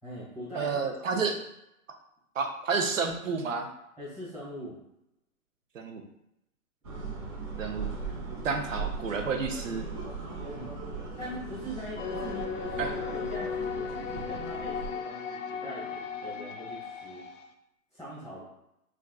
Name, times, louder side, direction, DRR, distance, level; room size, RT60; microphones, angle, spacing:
voice 1, 0.0-1.3 4.0-4.8 10.5-10.7 11.2-17.3 17.9-18.4, left 1 dB, ahead, -10 dB, 1.1 m, -41 dB
voice 2, 0.5-1.3 2.4-3.7 5.7-6.0 7.6-8.0 8.4-9.9 12.8-12.9, right 5 dB, 60° right, 4 dB, 0.7 m, -30 dB
sound 1, 6.8-14.9, right 4 dB, 20° right, 1.0 m, -38 dB
sound 2, 12.0-17.5, left 6 dB, 60° left, 0.5 m, -36 dB
4.4 x 2.5 x 2.3 m, 0.83 s
hypercardioid pair, 165°, 43 cm